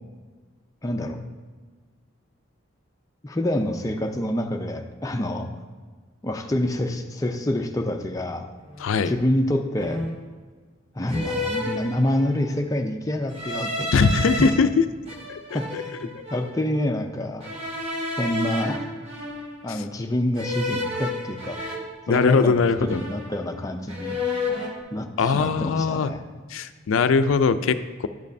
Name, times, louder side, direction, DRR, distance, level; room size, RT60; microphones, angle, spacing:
voice 1, 0.8-1.2 3.2-5.5 6.2-8.5 9.1-10.0 10.9-13.9 14.4-14.5 15.5-17.5 18.2-18.8 19.6-21.7 22.1-24.2 24.9-26.2, left 1 dB, 15° left, 4 dB, 0.5 m, -27 dB
sound 1, 8.7-8.9 9.8-10.3 11.1-12.5 13.3-14.5 15.1-16.6 17.4-19.8 20.4-22.6 22.9-23.6 23.9-24.8, left 2 dB, 30° right, 1.0 m, -31 dB
voice 2, 8.8-9.1 13.9-14.7 15.3-15.6 16.1-16.2 19.7-19.8 22.1-23.0 25.2-26.1 26.5-28.1, left 5 dB, 80° left, 11 dB, 0.4 m, -21 dB
11.0 x 5.2 x 2.7 m, 1.4 s
head